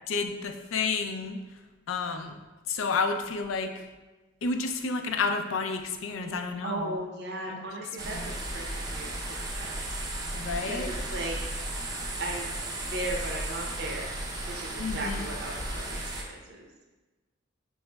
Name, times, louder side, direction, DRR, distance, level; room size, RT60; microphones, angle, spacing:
voice 1, 0.1-1.4 1.9-2.4 2.7-3.7 4.4-7.0 7.5-7.6 8.1-8.3 10.3-10.9 14.8-15.3, left 4 dB, 85° left, 6 dB, 0.4 m, -30 dB
voice 2, 6.2-9.1 9.4-9.8 10.6-11.5 12.2-12.5 12.9-14.1 14.5-16.7, right 2 dB, 55° right, 0 dB, 0.6 m, -37 dB
sound 1, 8.0-16.2, right 1 dB, 20° right, 0.5 m, -35 dB
5.7 x 3.1 x 2.2 m, 1.2 s
head